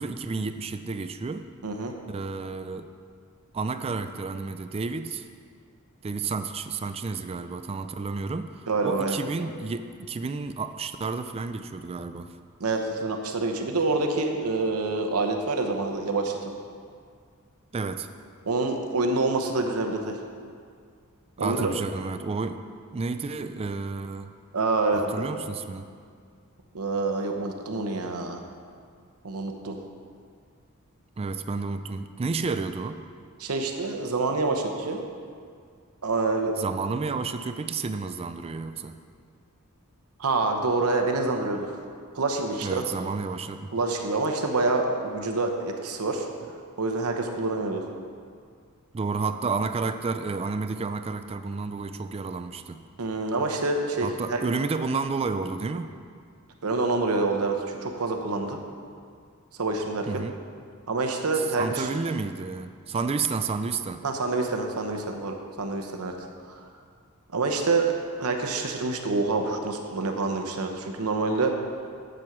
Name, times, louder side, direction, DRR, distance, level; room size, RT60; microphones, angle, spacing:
voice 1, 0.0-1.4 2.1-2.9 3.5-5.3 6.0-12.3 17.7-18.1 21.4-22.6 22.9-24.3 24.9-25.9 31.2-33.0 36.6-39.0 42.6-43.7 48.9-52.8 54.0-55.9 60.1-60.4 61.6-64.0, right 4 dB, 25° right, 10 dB, 0.4 m, -31 dB
voice 2, 1.6-1.9 8.7-9.2 12.6-16.5 18.4-20.2 21.4-21.7 24.5-25.3 26.7-28.4 29.2-29.8 33.4-35.0 36.0-36.6 40.2-41.8 42.1-42.9 43.7-46.3 46.8-47.9 53.0-54.4 56.6-58.6 59.6-60.2 60.9-61.9 64.0-66.1 66.5-66.7 67.3-67.9 68.2-71.6, right 3 dB, 80° right, 3 dB, 0.9 m, -27 dB
7.9 x 7.6 x 5.9 m, 2.1 s
head